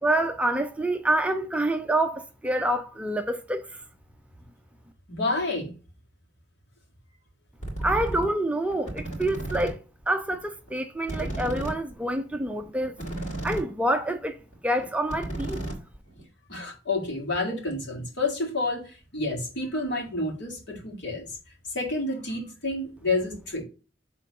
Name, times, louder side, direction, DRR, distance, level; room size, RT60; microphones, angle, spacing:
voice 1, 0.0-3.8 7.8-13.0 13.4-14.4 14.6-15.6, right 1 dB, 5° right, 0.5 m, -27 dB
voice 2, 5.1-5.7 16.5-21.4 21.7-23.6, left 2 dB, 65° left, 2.4 m, -29 dB
sound 1, 7.6-8.3 8.7-9.7 10.0-10.1 10.3-10.4 10.7-10.8 11.0-13.7 14.0-14.2 14.5-14.6 14.8-16.2, right 1 dB, 40° left, 2.8 m, -33 dB
6.6 x 3.7 x 5.0 m
head